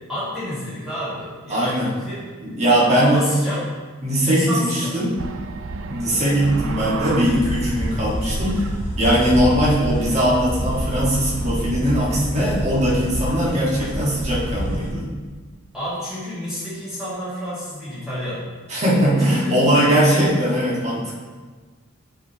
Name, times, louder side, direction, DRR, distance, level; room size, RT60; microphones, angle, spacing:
voice 1, 0.1-2.3 3.0-3.7 4.2-4.9 15.7-18.4 19.2-20.2, equal, 5° right, -12 dB, 1.7 m, -29 dB
voice 2, 1.5-1.9 2.4-3.2 4.0-5.2 5.9-8.6 9.0-15.0 18.7-21.1, equal, 35° right, -5 dB, 1.5 m, -20 dB
sound 1, 5.2-8.1 8.3-10.4, right 3 dB, 70° right, 0.4 m, -32 dB
sound 2, 7.2-14.9, equal, 30° left, 1.8 m, -27 dB
8.2 x 4.8 x 2.8 m, 1.4 s
head